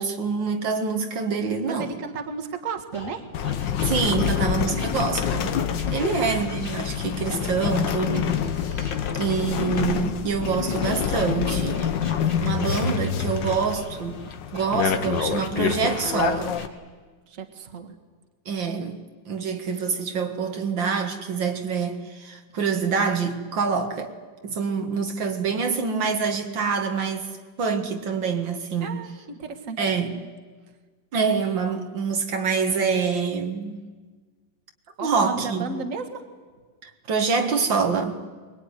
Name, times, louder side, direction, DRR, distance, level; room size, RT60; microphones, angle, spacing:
voice 1, 0.0-1.9 3.8-5.6 5.9-8.3 8.6-11.9 12.4-14.2 14.5-16.6 18.5-19.0 19.3-24.1 24.4-27.3 27.6-29.0 29.8-30.1 31.1-33.8 35.0-35.8 36.8-38.2, right 5 dB, 85° right, 2.5 m, -26 dB
voice 2, 1.7-3.4 6.0-6.3 17.3-18.0 28.8-30.0 35.0-36.2, right 4 dB, 45° right, 2.0 m, -34 dB
sound 1, 2.9-9.9 10.4-15.6 16.2-16.7, left 2 dB, 50° left, 3.9 m, -42 dB
sound 2, 3.3-16.7, left 8 dB, 75° left, 1.8 m, -27 dB
24.0 x 21.5 x 9.8 m
omnidirectional pair, 2.0 m